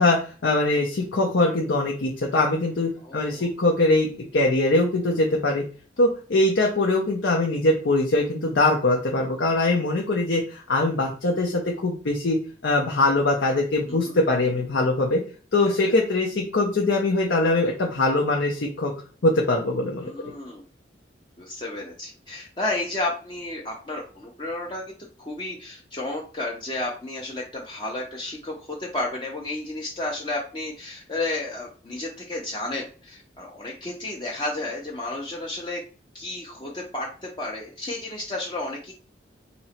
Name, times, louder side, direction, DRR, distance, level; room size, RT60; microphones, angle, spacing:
voice 1, 0.0-5.6 6.0-12.4 12.6-15.2 15.5-18.9 19.2-20.1, left 2 dB, 85° left, 0 dB, 0.7 m, -22 dB
voice 2, 3.0-3.5 13.9-14.1 20.0-20.6 21.4-24.9 25.2-35.8 36.1-38.9, left 2 dB, 25° left, -1 dB, 0.5 m, -32 dB
3.0 x 2.9 x 4.2 m, 0.39 s
head